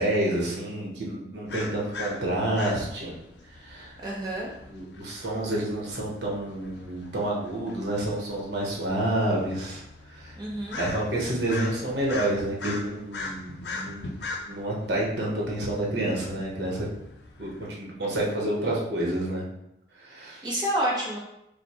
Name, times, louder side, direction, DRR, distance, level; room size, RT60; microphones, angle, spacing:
voice 1, 0.0-3.1 3.5-3.9 4.7-9.8 10.1-10.4 10.8-14.1 14.5-16.9 17.4-19.4 20.0-20.5, right 1 dB, 65° right, -3 dB, 1.0 m, -29 dB
sound 1, 1.5-17.7, left 3 dB, 65° left, 0.5 m, -41 dB
voice 2, 4.0-4.5 10.3-10.8 20.4-21.2, right 1 dB, 25° right, -4 dB, 0.9 m, -28 dB
4.9 x 2.2 x 3.0 m, 0.84 s
head